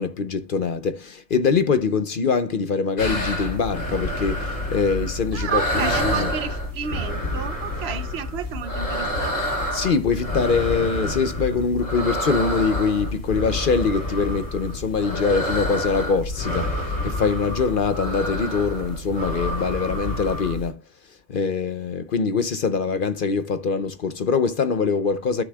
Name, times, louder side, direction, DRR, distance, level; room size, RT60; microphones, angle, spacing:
voice 1, 0.0-6.3 9.7-20.8 21.3-25.4, left 5 dB, 50° left, 0.7 m, -23 dB
sound 1, 3.0-20.7, left 1 dB, 80° left, 3.1 m, -28 dB
voice 2, 5.3-9.6, right 8 dB, 60° right, 0.9 m, -31 dB
13.0 x 6.2 x 2.2 m
omnidirectional pair, 1.3 m